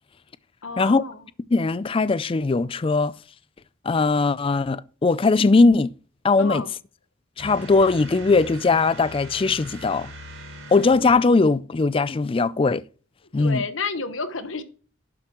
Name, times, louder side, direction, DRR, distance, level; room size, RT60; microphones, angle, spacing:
voice 1, 0.6-1.2 6.4-6.7 13.4-14.6, left 4 dB, 70° left, 1.2 m, -30 dB
voice 2, 1.5-3.1 3.9-5.9 6.2-6.6 7.4-10.1 10.7-12.8 13.3-13.6, left 3 dB, 25° left, 0.4 m, -20 dB
sound 1, 7.4-11.3, equal, 75° right, 4.1 m, -40 dB
12.0 x 7.7 x 3.0 m
head